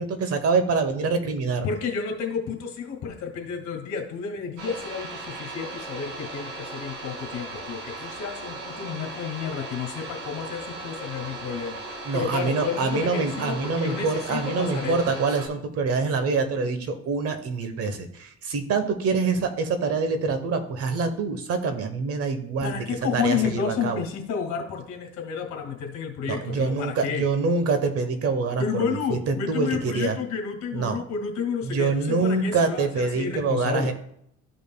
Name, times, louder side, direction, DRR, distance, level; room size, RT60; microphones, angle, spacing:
voice 1, 0.0-1.7 12.0-22.9 23.1-24.0 26.3-30.2 30.7-31.0 31.6-33.9, right 4 dB, 50° right, 8 dB, 1.1 m, -25 dB
voice 2, 1.6-15.1 22.6-27.2 28.6-33.9, left 6 dB, 65° left, 2 dB, 2.1 m, -31 dB
sound 1, 4.6-15.5, right 2 dB, 80° right, 3.3 m, -37 dB
13.5 x 5.3 x 2.3 m, 0.70 s
cardioid pair, 135°, 30 cm